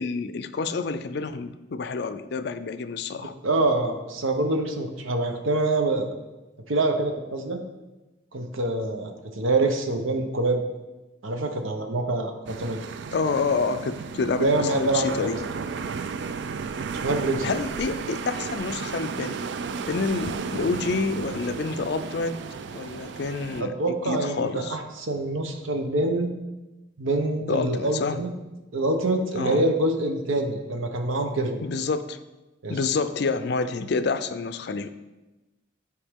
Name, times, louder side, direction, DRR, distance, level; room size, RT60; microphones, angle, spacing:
voice 1, 0.0-3.3 13.1-15.4 17.4-19.5 19.9-22.4 22.7-24.8 27.5-28.2 29.3-29.6 31.6-32.2 32.7-34.9, left 4 dB, 55° left, 12 dB, 0.4 m, -28 dB
voice 2, 3.2-6.1 6.7-7.6 8.3-10.6 11.2-12.8 14.4-15.6 16.9-17.6 23.6-26.3 27.0-28.3 28.7-31.6 32.6-32.8, right 2 dB, 85° right, 5 dB, 0.9 m, -25 dB
sound 1, 12.5-23.6, right 5 dB, 60° right, 0.3 m, -34 dB
10.0 x 4.7 x 3.6 m, 1.1 s
head